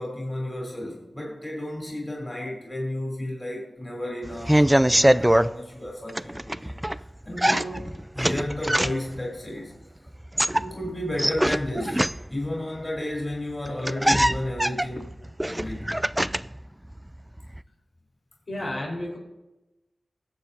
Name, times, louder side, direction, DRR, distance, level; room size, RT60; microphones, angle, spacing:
voice 1, 0.0-6.8 7.2-7.9 8.1-9.7 10.6-15.1 15.5-15.9, left 1 dB, 20° left, -2 dB, 3.7 m, -32 dB
sound 1, 4.3-5.5 6.1-7.0 7.4-9.2 10.1-12.5 13.3-13.4 13.7-16.6 16.9-17.6, right 1 dB, 10° right, 0.3 m, -23 dB
voice 2, 18.5-19.2, left 1 dB, 70° left, -4 dB, 4.6 m, -31 dB
21.5 x 7.6 x 2.8 m, 1.0 s
cardioid pair, 55°, 0 cm